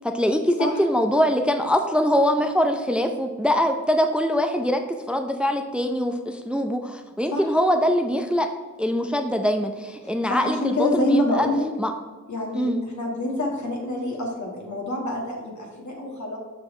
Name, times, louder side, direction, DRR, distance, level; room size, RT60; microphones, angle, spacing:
voice 1, 0.0-4.8 5.1-8.5 8.8-11.5 11.8-11.9 12.5-12.8, equal, 5° right, 5 dB, 0.6 m, -23 dB
voice 2, 10.0-11.7 12.3-16.4, left 1 dB, 65° left, -2 dB, 1.9 m, -26 dB
6.4 x 5.8 x 3.2 m, 1.4 s
cardioid pair, 40°, 31 cm